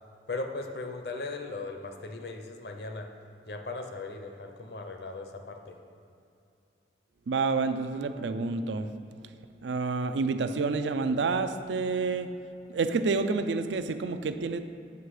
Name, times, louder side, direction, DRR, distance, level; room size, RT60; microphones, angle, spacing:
voice 1, 0.3-3.1 3.5-5.7, left 3 dB, 65° left, 5 dB, 0.7 m, -38 dB
voice 2, 7.3-8.9 9.6-12.3 12.7-14.6, right 4 dB, 90° right, 9 dB, 0.4 m, -28 dB
8.1 x 6.0 x 4.8 m, 2.6 s
head